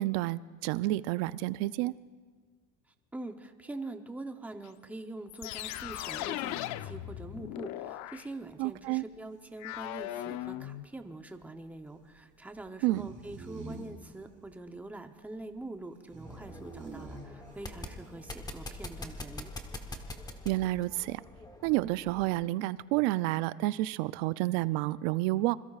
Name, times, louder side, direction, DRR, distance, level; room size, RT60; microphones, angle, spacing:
voice 1, 0.0-1.9 8.6-9.0 12.8-13.1 20.5-21.2 21.6-25.6, right 17 dB, 90° right, 17 dB, 0.5 m, -30 dB
voice 2, 3.1-19.5, right 2 dB, 5° right, 6 dB, 0.7 m, -44 dB
sound 1, 4.6-4.7 5.3-8.3 9.6-10.8, left 14 dB, 60° left, 0.6 m, -38 dB
sound 2, 7.0-19.3 19.6-20.0, right 3 dB, 25° right, 4.2 m, -49 dB
sound 3, 16.2-22.4, left 2 dB, 15° left, 1.1 m, -44 dB
26.5 x 22.0 x 2.4 m, 1.5 s
cardioid pair, 150°, 31 cm